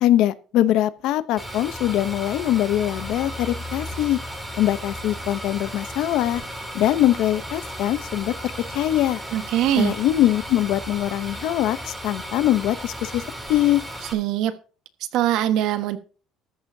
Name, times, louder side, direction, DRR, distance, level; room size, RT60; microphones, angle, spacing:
voice 1, 0.0-4.2 4.6-6.4 6.7-8.3 8.7-9.2 9.8-13.2 13.5-13.8, left 13 dB, 60° left, 15 dB, 0.8 m, -22 dB
sound 1, 1.4-14.1, equal, 5° right, 3.0 m, -35 dB
voice 2, 9.3-9.9 14.1-14.5 15.1-16.0, right 12 dB, 60° right, 10 dB, 1.4 m, -22 dB
14.0 x 13.5 x 2.7 m, 0.37 s
cardioid pair, 170°, 0 cm